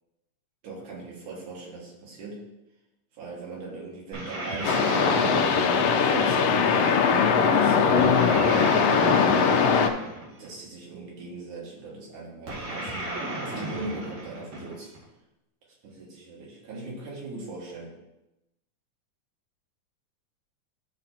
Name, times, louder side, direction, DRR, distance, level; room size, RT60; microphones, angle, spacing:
voice 1, 0.6-2.4 3.1-6.8 7.5-8.9 10.4-14.9 15.8-17.9, right 3 dB, 75° right, -3 dB, 3.3 m, -39 dB
sound 1, 4.1-6.7 8.0-10.5 12.5-15.0, right 1 dB, 60° right, 3.2 m, -35 dB
sound 2, 4.6-9.9, left 5 dB, 80° left, 1.4 m, -21 dB
13.0 x 5.1 x 2.9 m, 0.95 s
omnidirectional pair, 3.6 m